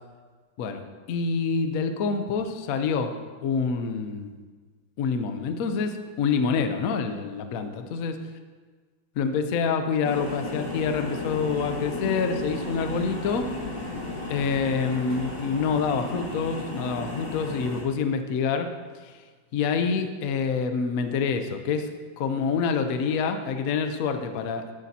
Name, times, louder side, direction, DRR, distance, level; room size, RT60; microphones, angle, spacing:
voice 1, 1.1-3.1 3.4-4.3 5.0-8.2 9.2-13.5 14.3-18.7 19.0-19.2 19.5-24.7, left 5 dB, 60° left, 7 dB, 1.0 m, -27 dB
sound 1, 10.0-17.8, left 2 dB, 80° left, 2.7 m, -34 dB
11.5 x 11.0 x 2.8 m, 1.4 s
omnidirectional pair, 2.1 m